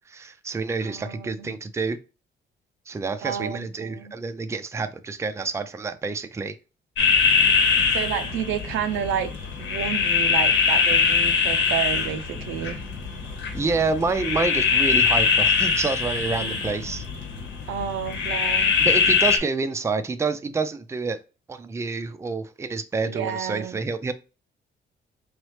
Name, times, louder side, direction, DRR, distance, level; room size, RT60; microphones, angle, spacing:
voice 1, 0.0-2.0 2.9-6.6 13.5-17.0 18.8-21.2 21.5-24.1, right 4 dB, 15° right, 0.4 m, -28 dB
voice 2, 0.8-1.6 3.2-4.1 7.9-9.3 9.6-12.8 16.2-16.6 17.7-18.8 23.0-23.8, right 9 dB, 85° right, 0.5 m, -30 dB
sound 1, 7.0-19.4, left 5 dB, 75° left, 1.1 m, -22 dB
3.9 x 3.1 x 3.1 m
cardioid pair, 90°, 20 cm